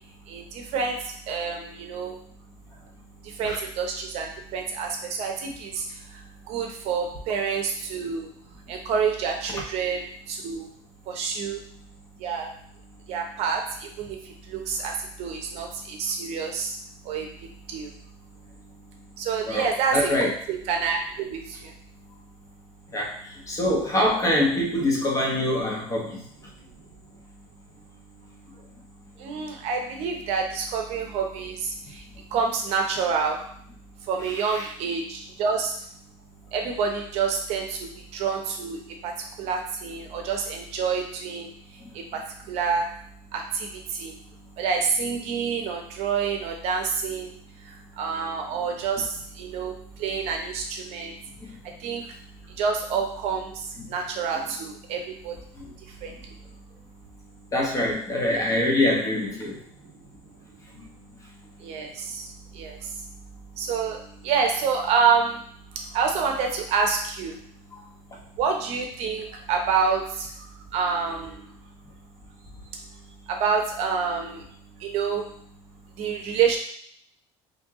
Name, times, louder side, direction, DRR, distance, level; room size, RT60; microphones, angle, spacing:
voice 1, 0.3-0.9 1.3-2.2 3.4-4.9 5.2-5.7 6.5-8.3 8.7-10.7 11.1-11.6 12.2-12.5 13.1-14.2 14.5-14.9 15.2-16.7 17.1-17.3 17.7-17.9 19.2-21.7 29.2-31.6 32.3-33.4 34.1-35.7 36.5-39.1 39.4-41.5 42.1-42.2 42.5-42.9 43.3-44.1 44.6-47.3 48.0-49.0 49.4-49.7 50.0-51.1 51.8-52.0 52.6-53.5 53.9-55.0 55.2-55.4 56.0-56.1 61.6-62.2 62.5-62.8 63.6-64.0 64.2-65.4 65.9-67.4 68.4-70.3 70.7-71.4 73.4-74.4 74.8-75.2 76.0-76.6, right 6 dB, 55° right, 2 dB, 0.8 m, -27 dB
voice 2, 19.4-20.3 22.9-26.3 34.3-34.7 51.4-51.6 55.6-55.7 57.5-59.6, left 1 dB, 25° left, -2 dB, 1.1 m, -25 dB
4.4 x 2.7 x 3.7 m, 0.64 s
cardioid pair, 150°, 13 cm